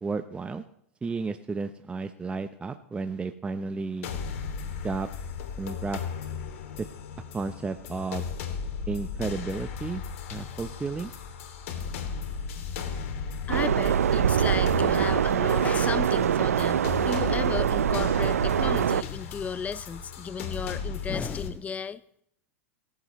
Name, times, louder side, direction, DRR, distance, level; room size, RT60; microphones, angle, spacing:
voice 1, 0.0-0.6 1.0-4.1 4.8-5.1 5.6-6.0 6.8-6.9 7.3-8.3 8.9-10.0 10.3-11.1, right 4 dB, 15° right, 8 dB, 0.8 m, -32 dB
sound 1, 4.0-21.5, left 6 dB, 65° left, 2.8 m, -36 dB
voice 2, 13.5-22.0, left 6 dB, 20° left, 16 dB, 0.7 m, -34 dB
sound 2, 13.5-19.0, right 9 dB, 85° right, 0.6 m, -24 dB
25.5 x 14.5 x 3.2 m, 0.70 s
hypercardioid pair, 110°, 8 cm